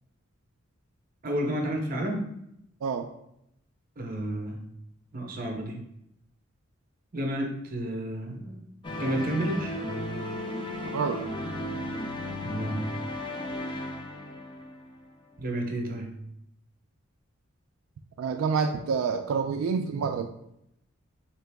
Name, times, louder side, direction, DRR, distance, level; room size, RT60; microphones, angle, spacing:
voice 1, 1.2-2.3 4.0-4.7 5.1-5.9 7.1-8.7 9.0-9.8 12.4-13.0 15.4-16.2, right 1 dB, 40° right, 3 dB, 0.7 m, -31 dB
sound 1, 8.8-15.1, left 1 dB, 20° left, 0.4 m, -35 dB
voice 2, 10.9-11.2 18.2-20.3, right 5 dB, 80° right, 5 dB, 0.3 m, -28 dB
3.8 x 2.9 x 3.4 m, 0.77 s
head